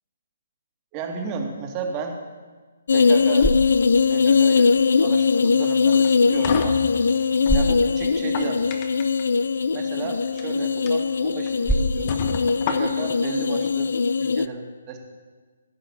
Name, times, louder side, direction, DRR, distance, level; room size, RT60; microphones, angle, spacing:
voice 1, 0.9-2.2 2.9-3.5 4.1-4.7 5.0-6.9 7.5-8.6 9.7-12.2 12.7-13.9 14.2-15.0, right 5 dB, 25° right, 3 dB, 1.8 m, -33 dB
sound 1, 2.9-14.5, left 5 dB, 70° left, 0.4 m, -21 dB
sound 2, 3.0-14.1, right 1 dB, ahead, 1.0 m, -33 dB
sound 3, 5.9-7.6 8.1-9.2 10.2-10.4 10.9-11.0 11.5-11.6 12.1-13.2, left 6 dB, 35° left, 1.2 m, -31 dB
15.0 x 5.7 x 7.2 m, 1.4 s
figure-of-eight pair, 145°, 0 cm